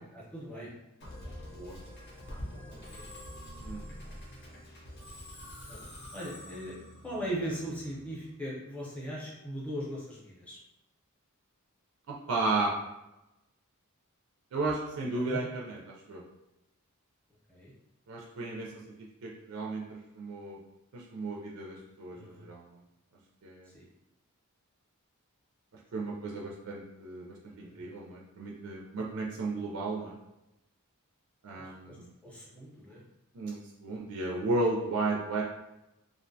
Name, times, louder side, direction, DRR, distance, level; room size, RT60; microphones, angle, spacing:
voice 1, 0.1-0.7 2.7-3.1 5.7-5.8 6.1-10.6 15.1-15.4 17.5-17.7 22.1-22.4 23.7-23.9 27.5-27.8 31.5-32.0 32.2-33.0, right 1 dB, 5° left, -6 dB, 0.6 m, -39 dB
Musical instrument, 1.0-8.3, equal, 50° left, 0.7 m, -46 dB
voice 2, 12.1-12.7 14.5-15.8 16.1-16.2 18.1-18.7 19.2-20.6 20.9-22.7 23.4-23.7 25.9-30.1 31.4-32.1 33.3-35.4, right 2 dB, 65° right, -2 dB, 0.4 m, -34 dB
2.5 x 2.1 x 2.6 m, 0.94 s
head